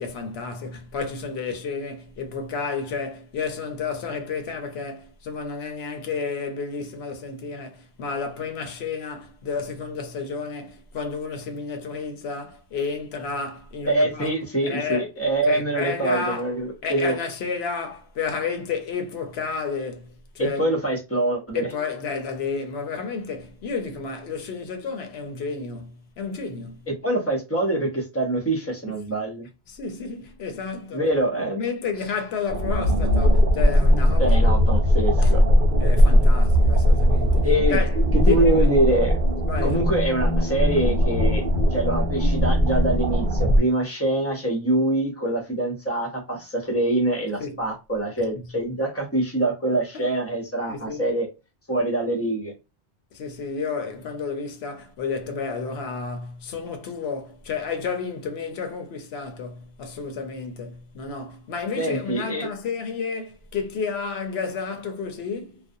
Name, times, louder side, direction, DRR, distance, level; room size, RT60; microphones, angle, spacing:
voice 1, 0.0-14.3 14.6-16.5 16.8-20.7 21.5-26.9 29.7-31.1 31.6-34.4 35.2-35.3 35.8-38.7 39.4-39.8 47.4-47.7 48.3-48.5 49.9-50.1 50.7-51.1 53.1-65.6, left 5 dB, 70° left, 0.8 m, -31 dB
voice 2, 13.8-17.2 20.4-21.7 26.9-29.5 30.9-31.6 34.2-35.4 37.4-37.8 38.1-39.2 39.6-41.4 41.7-51.3 51.7-52.5 61.8-62.5, right 1 dB, 15° left, 0.5 m, -24 dB
sound 1, 32.5-43.6, equal, 55° right, 0.7 m, -19 dB
2.5 x 2.0 x 2.5 m
omnidirectional pair, 1.2 m